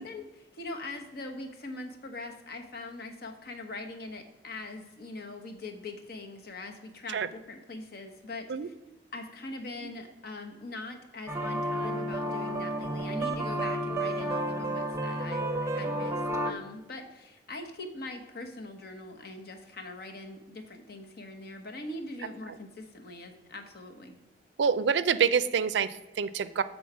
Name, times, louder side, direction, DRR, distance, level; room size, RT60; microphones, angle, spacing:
voice 1, 0.0-8.7 9.1-24.2, left 2 dB, 60° left, 4 dB, 1.0 m, -42 dB
sound 1, 11.3-16.5, right 1 dB, 15° right, 0.7 m, -31 dB
voice 2, 24.6-26.6, right 6 dB, 80° right, 14 dB, 0.4 m, -27 dB
7.1 x 3.9 x 6.0 m, 1.1 s
head